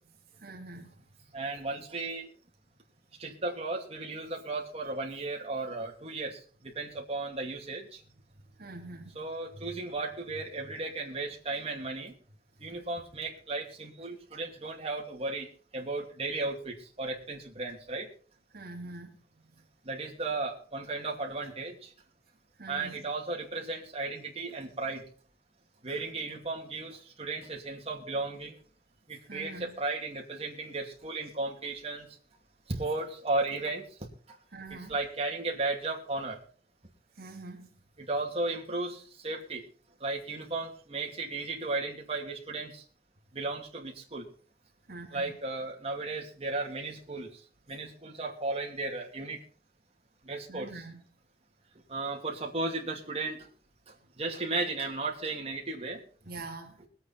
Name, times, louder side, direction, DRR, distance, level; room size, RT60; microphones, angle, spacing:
voice 1, 0.4-1.0 8.6-9.2 9.7-9.8 12.6-12.7 18.5-19.2 19.5-19.6 22.6-23.0 25.9-26.0 29.3-29.7 34.5-35.0 37.1-37.7 44.9-45.4 50.5-51.0 56.3-56.8, right 2 dB, 60° right, 2 dB, 2.3 m, -44 dB
voice 2, 1.3-2.3 3.2-8.0 9.2-12.1 12.6-15.5 15.7-18.1 19.8-21.9 22.7-25.0 25.8-28.5 29.1-32.1 32.7-33.9 34.3-34.4 34.9-36.4 38.0-39.6 40.0-42.8 43.3-44.3 45.1-47.4 47.7-49.4 50.2-50.7 51.9-53.4 54.2-56.0, right 3 dB, 35° right, 0 dB, 2.6 m, -35 dB
21.5 x 8.3 x 4.3 m, 0.41 s
head